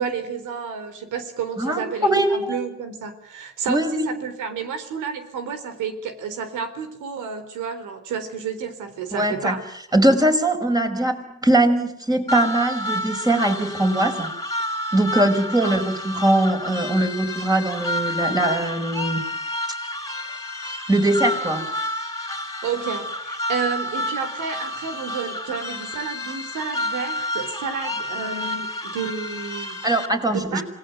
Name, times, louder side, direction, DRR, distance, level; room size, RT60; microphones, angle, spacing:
voice 1, 0.0-9.6 15.6-15.8 22.6-29.8 30.3-30.6, right 6 dB, 85° right, 9 dB, 4.1 m, -30 dB
voice 2, 1.6-2.6 3.7-4.1 9.1-9.6 9.9-14.3 14.9-19.3 20.9-21.6 29.8-30.6, right 1 dB, 10° right, 5 dB, 5.4 m, -21 dB
sound 1, 12.3-30.1, left 1 dB, 10° left, 3.9 m, -30 dB
27.0 x 19.0 x 9.5 m, 0.72 s
cardioid pair, 90°, 30 cm